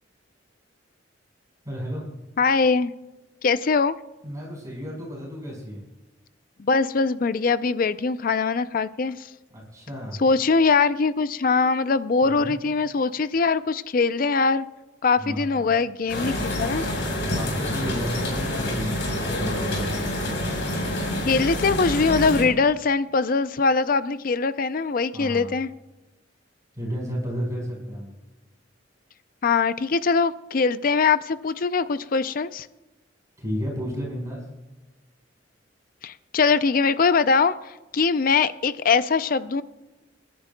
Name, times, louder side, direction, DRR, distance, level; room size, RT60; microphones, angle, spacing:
voice 1, 1.6-2.0 4.2-5.8 9.5-10.2 12.2-12.6 15.2-15.6 17.3-20.0 25.1-25.5 26.7-28.1 33.4-34.4, equal, 20° right, -2 dB, 4.9 m, -32 dB
voice 2, 2.4-2.9 3.4-3.9 6.6-9.3 10.2-14.6 15.0-16.9 21.3-25.7 29.4-32.7 36.0-39.6, left 4 dB, 45° left, 14 dB, 0.4 m, -22 dB
sound 1, 16.1-22.4, left 1 dB, 65° left, 4.6 m, -27 dB
29.0 x 11.0 x 2.2 m, 1.1 s
head